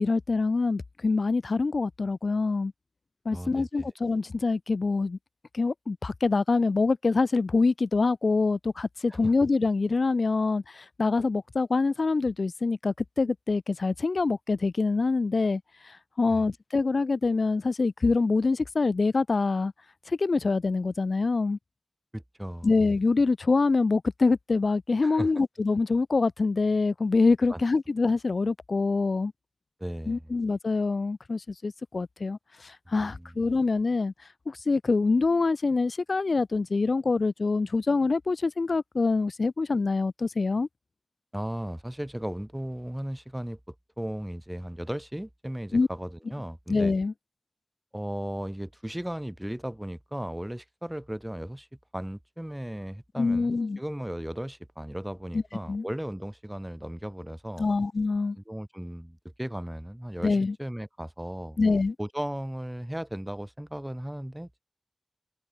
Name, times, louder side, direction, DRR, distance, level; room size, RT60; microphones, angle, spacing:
voice 1, 0.0-2.7 3.2-5.2 5.5-19.7 20.1-21.6 22.6-29.3 30.1-34.1 34.5-40.7 45.7-45.9 46.7-47.1 53.2-53.8 55.3-55.4 55.7-55.8 57.6-58.4 60.2-60.5 61.6-61.9, left 3 dB, 85° left, 1.1 m, -25 dB
voice 2, 3.3-3.9 9.1-9.3 16.3-16.4 22.1-22.7 25.0-25.3 27.5-27.6 29.8-30.3 32.9-33.3 41.3-46.9 47.9-51.7 51.9-57.7 58.4-61.6 62.0-64.6, equal, 10° right, 6.7 m, -36 dB
wide cardioid pair, 45°, 0 cm